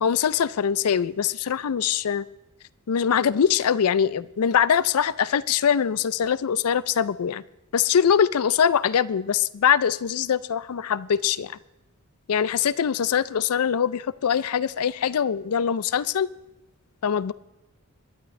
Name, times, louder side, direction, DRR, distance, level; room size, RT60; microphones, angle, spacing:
voice 1, 0.0-2.2 2.9-7.4 7.7-11.5 12.3-16.3 17.0-17.3, left 8 dB, 85° left, 18 dB, 0.4 m, -23 dB
22.5 x 11.5 x 3.2 m, 0.98 s
head